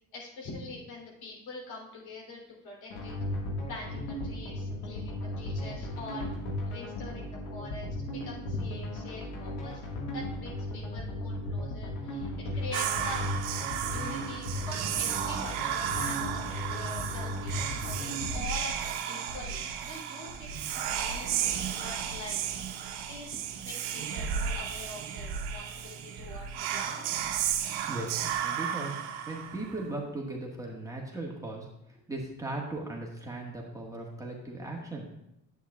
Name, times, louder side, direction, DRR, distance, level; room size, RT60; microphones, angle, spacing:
voice 1, 0.1-3.1 3.7-6.3 6.7-9.9 10.1-13.2 13.9-22.4 23.0-27.0, left 3 dB, 60° left, -3 dB, 3.2 m, -44 dB
sound 1, 2.9-18.3, left 1 dB, 80° left, 1.9 m, -36 dB
Whispering, 12.7-29.9, right 9 dB, 70° right, 0.9 m, -33 dB
voice 2, 27.5-29.0 29.2-35.1, right 2 dB, 10° right, -2 dB, 1.6 m, -38 dB
9.9 x 8.4 x 2.4 m, 0.81 s
hypercardioid pair, 70°, 41 cm